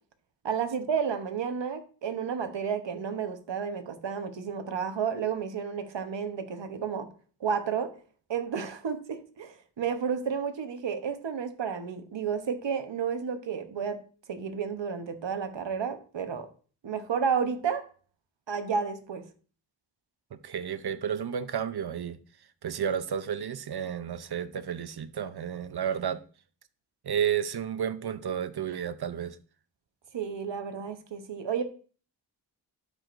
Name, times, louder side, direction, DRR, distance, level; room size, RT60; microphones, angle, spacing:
voice 1, 0.4-7.1 7.4-7.9 8.3-14.0 14.3-16.5 16.8-17.9 18.5-19.3 30.1-31.6, right 6 dB, 80° right, 1.0 m, -31 dB
voice 2, 20.3-22.2 22.6-26.2 27.0-29.4, right 8 dB, 60° right, 0.7 m, -32 dB
11.5 x 4.9 x 2.6 m
wide cardioid pair, 80°, 44 cm